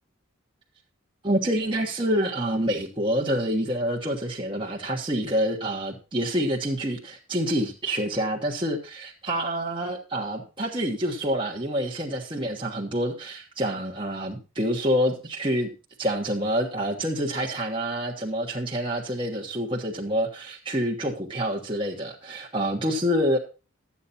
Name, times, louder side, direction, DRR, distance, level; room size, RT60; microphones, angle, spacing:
voice 1, 1.2-15.7 16.0-23.4, equal, 25° right, -2 dB, 1.4 m, -27 dB
13.0 x 8.5 x 4.2 m, 0.32 s
head